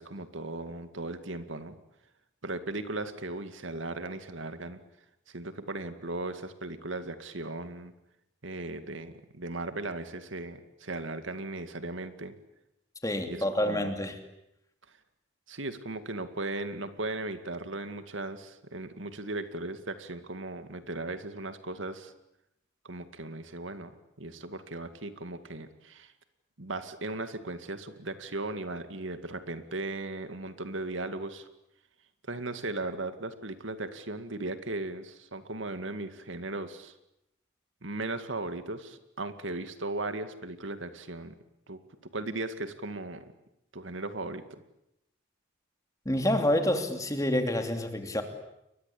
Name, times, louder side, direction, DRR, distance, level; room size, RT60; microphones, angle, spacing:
voice 1, 0.0-1.8 2.4-4.8 5.3-7.9 8.4-12.3 13.3-14.0 15.5-22.1 22.8-26.1 26.6-31.5 32.3-36.9 37.8-41.3 41.7-43.3 43.7-44.6, right 2 dB, 80° right, 9 dB, 2.2 m, -37 dB
voice 2, 13.0-14.1 46.0-48.2, left 1 dB, 15° left, 6 dB, 2.9 m, -28 dB
30.0 x 22.5 x 8.6 m, 0.83 s
head